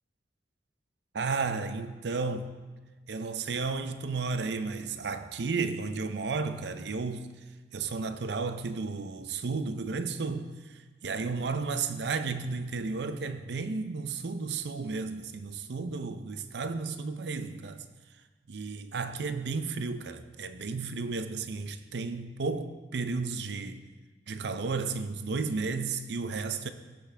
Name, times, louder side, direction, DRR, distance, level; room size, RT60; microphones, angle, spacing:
voice 1, 1.1-2.5 3.1-7.3 7.7-10.5 11.0-17.8 18.5-23.8 24.3-26.7, right 4 dB, 65° right, 0.5 m, -33 dB
15.0 x 6.0 x 3.4 m
head